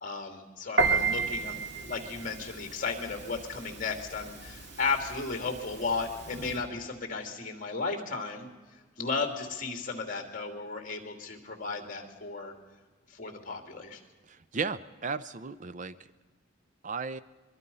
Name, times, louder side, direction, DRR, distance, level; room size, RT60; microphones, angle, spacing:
voice 1, 0.0-12.5 13.1-14.0, left 4 dB, 40° left, 5 dB, 2.7 m, -35 dB
Piano, 0.8-6.6, right 4 dB, 60° right, 2.6 m, -33 dB
voice 2, 14.3-16.0 16.8-17.2, right 5 dB, 40° right, 14 dB, 0.5 m, -35 dB
23.5 x 22.5 x 5.5 m, 1.4 s
head